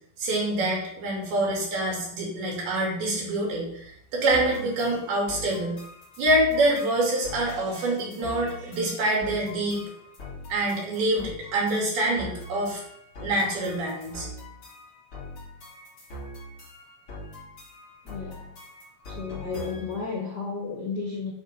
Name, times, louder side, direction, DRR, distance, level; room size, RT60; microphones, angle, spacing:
voice 1, 0.2-5.8 6.2-9.8 10.5-12.8 13.2-14.3, right 1 dB, 65° right, -3 dB, 4.6 m, -26 dB
sound 1, 4.3-20.0, left 1 dB, 35° left, 3.5 m, -43 dB
voice 2, 18.0-18.5 19.1-21.3, left 4 dB, 85° left, -2 dB, 0.9 m, -33 dB
9.8 x 4.9 x 5.5 m, 0.72 s
omnidirectional pair, 4.8 m